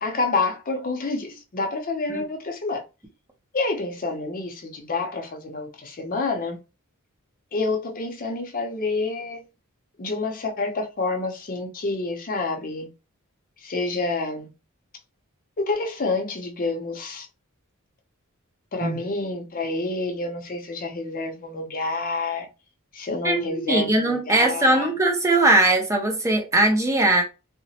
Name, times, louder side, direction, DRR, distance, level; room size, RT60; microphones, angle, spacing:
voice 1, 0.0-2.8 3.5-6.6 7.5-9.4 10.0-12.9 13.6-14.5 15.6-17.3 18.7-22.5 22.9-24.9, left 3 dB, 40° left, 0.6 m, -28 dB
voice 2, 23.2-27.2, right 2 dB, 15° right, 0.5 m, -20 dB
2.8 x 2.0 x 2.8 m
head